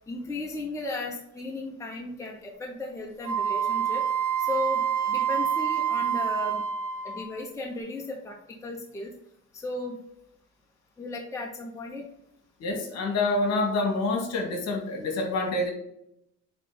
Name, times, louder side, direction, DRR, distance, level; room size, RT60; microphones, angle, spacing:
voice 1, 0.1-4.0 4.4-6.6 7.0-9.1 9.5-10.0 11.0-12.1, left 2 dB, 10° left, -1 dB, 0.9 m, -35 dB
Wind instrument woodwind instrument, 3.2-7.4, right 8 dB, 80° right, 1.3 m, -27 dB
voice 2, 12.6-15.7, left 2 dB, 60° left, 2 dB, 2.0 m, -27 dB
8.1 x 3.3 x 3.8 m, 0.77 s
cardioid pair, 155°, 30 cm